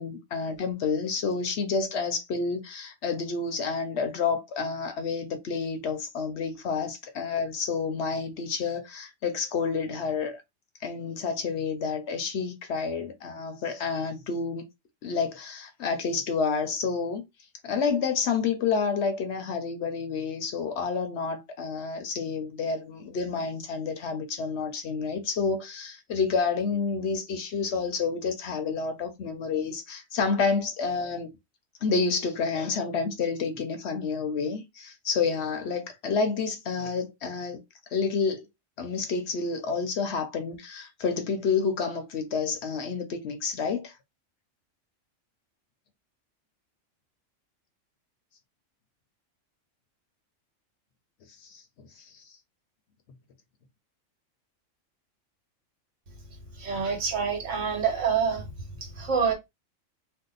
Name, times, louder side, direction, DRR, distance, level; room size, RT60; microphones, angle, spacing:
voice 1, 0.0-10.4 10.8-14.7 15.0-17.2 17.6-31.3 31.8-37.6 37.9-38.5 38.8-43.9 51.4-52.2, left 5 dB, 65° left, 0.8 m, -29 dB
voice 2, 56.6-58.5 58.8-59.3, right 6 dB, 70° right, 1.3 m, -26 dB
2.7 x 2.2 x 3.8 m
omnidirectional pair, 1.3 m